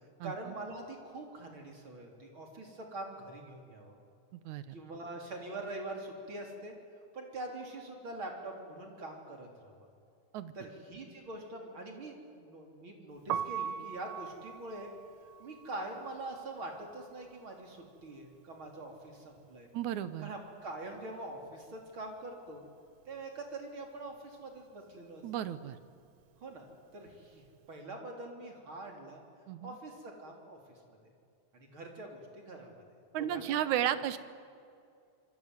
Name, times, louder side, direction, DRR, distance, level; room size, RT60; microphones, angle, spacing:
voice 1, 0.2-4.0 4.7-6.7 7.1-9.9 10.5-14.9 15.4-19.7 20.2-22.6 23.1-25.2 26.4-26.7 26.9-29.2 29.6-31.0 31.5-32.8 33.2-33.6, right 2 dB, 45° right, 2 dB, 4.3 m, -44 dB
voice 2, 4.4-4.7 10.3-10.5 19.7-20.3 25.2-25.8 29.5-29.8 33.1-34.2, right 11 dB, 85° right, 13 dB, 2.5 m, -33 dB
Piano, 13.2-19.1 19.4-21.0 21.2-27.7, right 8 dB, 70° right, 1.5 m, -43 dB
27.0 x 23.0 x 9.4 m, 2.4 s
omnidirectional pair, 3.3 m